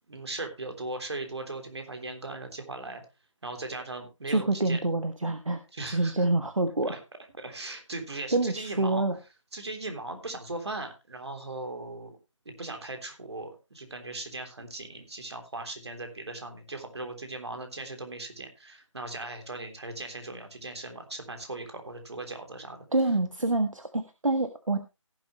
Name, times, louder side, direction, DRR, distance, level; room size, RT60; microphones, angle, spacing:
voice 1, 0.1-3.0 3.4-4.8 5.7-6.1 6.9-7.0 7.4-9.0 9.5-12.2 12.4-22.8, right 2 dB, 55° right, 5 dB, 3.4 m, -38 dB
voice 2, 4.3-5.6 5.9-7.0 8.3-9.2 22.9-24.8, right 2 dB, 75° right, 8 dB, 1.5 m, -26 dB
17.5 x 7.7 x 3.1 m, 0.27 s
figure-of-eight pair, 155°, 17 cm